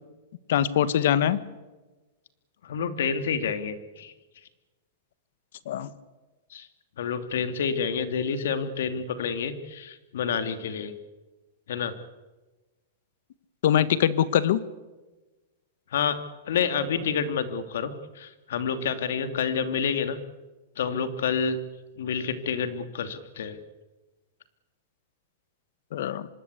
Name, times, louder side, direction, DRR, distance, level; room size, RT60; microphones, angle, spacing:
voice 1, 0.5-1.4 5.7-5.9 13.6-14.6 25.9-26.3, left 10 dB, 65° left, 15 dB, 1.6 m, -22 dB
voice 2, 2.7-4.1 6.5-6.7 7.0-11.0 11.7-11.9 15.9-16.2 16.5-20.2 20.8-21.6 22.0-23.6, left 6 dB, 80° left, 10 dB, 2.8 m, -28 dB
25.5 x 21.0 x 8.4 m, 1.2 s
supercardioid pair, 170°, 0 cm